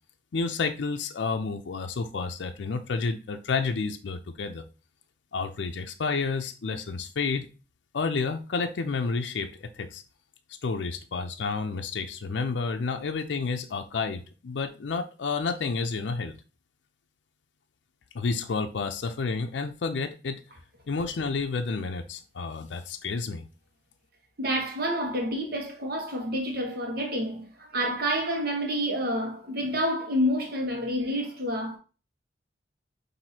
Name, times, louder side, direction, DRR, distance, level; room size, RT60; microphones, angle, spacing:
voice 1, 0.3-4.6 5.3-7.5 7.9-10.0 10.6-16.4 18.1-20.4 20.9-23.5, left 4 dB, 75° left, 0.5 m, -30 dB
voice 2, 24.4-31.8, equal, 55° right, 1.1 m, -28 dB
5.9 x 2.7 x 2.7 m
head